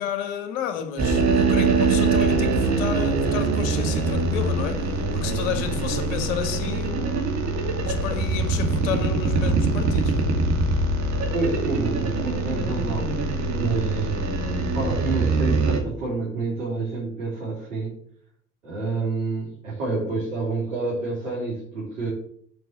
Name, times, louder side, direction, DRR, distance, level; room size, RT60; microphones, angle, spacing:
voice 1, 0.0-7.4 7.8-10.3, left 9 dB, 60° left, 1.6 m, -32 dB
sound 1, 1.0-15.8, right 3 dB, 40° right, 2.5 m, -23 dB
voice 2, 11.3-13.1 13.6-14.1 14.6-18.0 18.6-22.1, right 3 dB, 80° right, 3.5 m, -28 dB
7.8 x 5.4 x 7.3 m
figure-of-eight pair, 70°, 39 cm